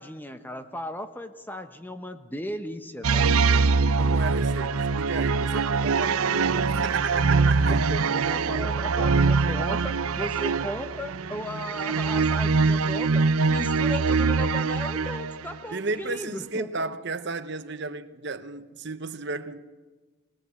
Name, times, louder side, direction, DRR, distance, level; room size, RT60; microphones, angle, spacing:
voice 1, 0.0-3.3 7.7-16.8, equal, 10° left, 0.9 m, -36 dB
sound 1, 3.0-15.6, right 4 dB, 80° right, 0.6 m, -23 dB
voice 2, 4.0-7.8 15.7-19.6, right 3 dB, 50° right, 0.9 m, -33 dB
20.5 x 19.0 x 8.2 m
head